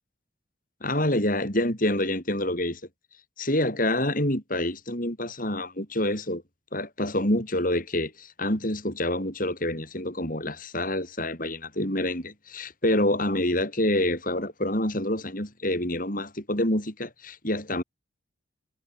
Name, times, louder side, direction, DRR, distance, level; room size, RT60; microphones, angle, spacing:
voice 1, 0.8-2.8 3.4-6.4 6.7-17.8, left 1 dB, 45° left, 7.1 m, -27 dB
head